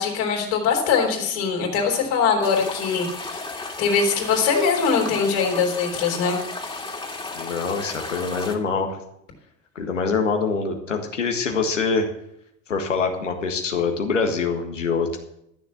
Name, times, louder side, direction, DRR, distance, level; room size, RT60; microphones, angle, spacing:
voice 1, 0.0-3.5 3.8-6.9, left 5 dB, 65° left, 1 dB, 3.8 m, -22 dB
sound 1, 2.4-8.6, left 3 dB, 15° left, 2.4 m, -34 dB
voice 2, 7.3-9.0 9.7-12.1 12.7-15.2, left 4 dB, 90° left, 4 dB, 1.8 m, -24 dB
13.5 x 7.0 x 7.4 m, 0.77 s
hypercardioid pair, 70°, 36 cm